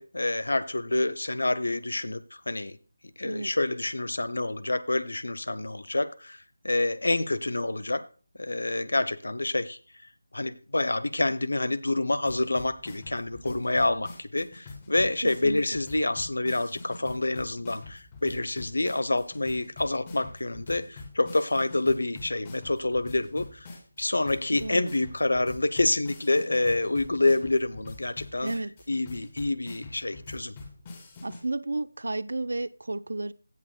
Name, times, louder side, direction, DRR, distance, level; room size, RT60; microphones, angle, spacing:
voice 1, 0.0-2.2 2.5-2.8 3.2-8.0 8.4-9.8 10.3-23.7 24.0-28.5 28.9-30.5, left 2 dB, 70° left, 0.9 m, -27 dB
sound 1, 12.3-31.4, left 3 dB, 25° left, 2.8 m, -45 dB
voice 2, 15.2-15.6 24.6-24.9 28.4-28.7 31.2-33.3, right 2 dB, 70° right, 0.7 m, -32 dB
17.0 x 6.7 x 2.3 m
figure-of-eight pair, 160°, 0 cm